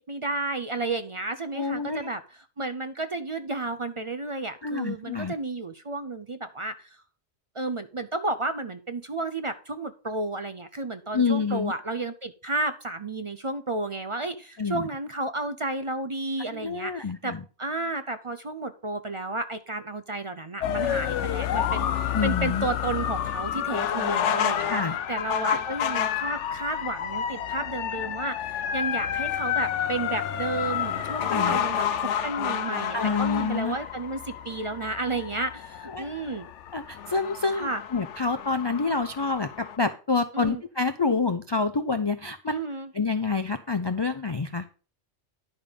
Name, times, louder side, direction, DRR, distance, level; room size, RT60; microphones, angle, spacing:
voice 1, 0.1-2.2 2.6-7.0 7.6-17.3 17.6-24.8 25.1-36.5 37.5-37.8 40.3-40.6 42.5-42.9, right 2 dB, 40° right, 10 dB, 0.5 m, -32 dB
voice 2, 1.6-2.0 4.6-5.3 11.1-11.7 14.6-14.8 16.5-17.4 22.1-22.7 24.7-24.9 31.2-31.6 32.9-33.8 35.9-36.1 36.7-42.6 42.9-44.6, left 4 dB, 35° left, 9 dB, 0.4 m, -27 dB
sound 1, 20.6-39.8, left 9 dB, 90° left, 1.0 m, -29 dB
10.5 x 5.1 x 5.3 m, 0.36 s
omnidirectional pair, 1.2 m